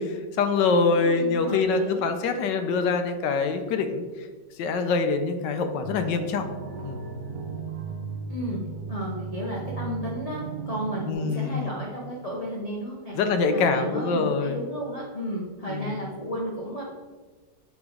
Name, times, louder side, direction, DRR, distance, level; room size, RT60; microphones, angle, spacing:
voice 1, 0.0-4.0 4.6-6.5 6.8-7.0 11.1-11.8 13.1-14.6 15.7-16.0, left 4 dB, 75° left, 7 dB, 1.3 m, -25 dB
voice 2, 0.9-2.1 8.3-8.6 8.9-13.2 13.5-16.8, right 1 dB, 40° left, -4 dB, 0.5 m, -33 dB
sound 1, 5.8-11.1, right 4 dB, 70° right, 1.0 m, -36 dB
7.2 x 3.1 x 4.8 m, 1.4 s
omnidirectional pair, 2.0 m